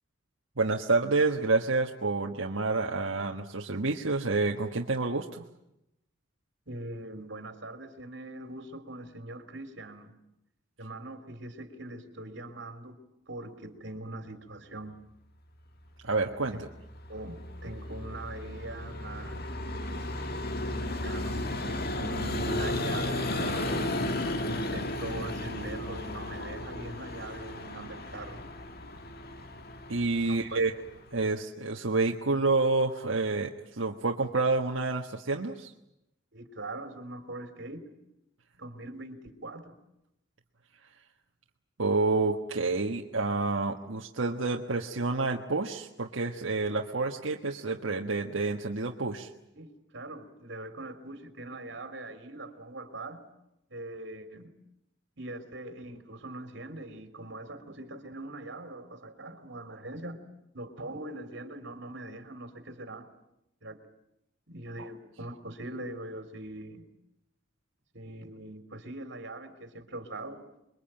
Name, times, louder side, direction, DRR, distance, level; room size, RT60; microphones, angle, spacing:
voice 1, 0.6-5.5 16.0-16.7 29.9-30.7 31.1-35.7 41.8-49.3 64.8-64.9, right 3 dB, 90° right, 1 dB, 1.5 m, -28 dB
voice 2, 6.7-10.2 10.8-13.0 13.3-15.0 16.5-16.6 17.1-19.5 20.6-24.0 24.4-28.4 30.2-30.6 36.3-37.9 38.6-39.7 49.5-53.2 53.7-54.5 55.2-60.2 60.5-63.1 63.6-63.8 64.5-66.8 67.9-70.5, right 2 dB, 65° right, 9 dB, 3.3 m, -42 dB
Vehicle, 16.6-31.3, left 1 dB, 55° left, 1.9 m, -34 dB
28.0 x 22.5 x 9.0 m, 0.85 s
head